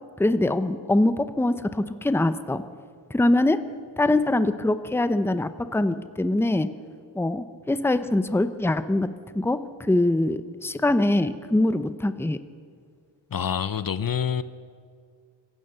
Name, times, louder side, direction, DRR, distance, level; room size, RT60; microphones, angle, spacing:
voice 1, 0.2-2.6 3.1-3.6 4.0-6.7 7.1-9.1 9.3-12.4, left 2 dB, 5° left, 0.7 m, -23 dB
voice 2, 13.3-14.4, left 8 dB, 50° left, 0.7 m, -26 dB
26.5 x 15.5 x 6.8 m
wide cardioid pair, 105°, 44 cm